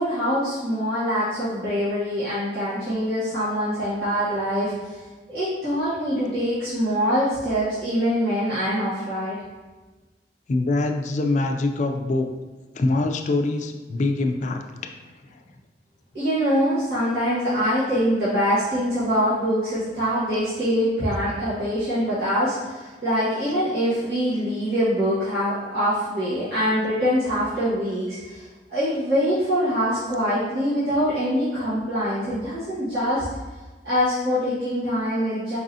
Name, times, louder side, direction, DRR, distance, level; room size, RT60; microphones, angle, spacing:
voice 1, 0.0-5.0 5.3-9.4 16.1-33.2 33.8-35.6, equal, 60° right, -13 dB, 1.5 m, -24 dB
voice 2, 10.5-12.3 12.8-14.6, left 2 dB, 45° left, 4 dB, 0.4 m, -23 dB
4.7 x 3.7 x 2.7 m, 1.2 s
head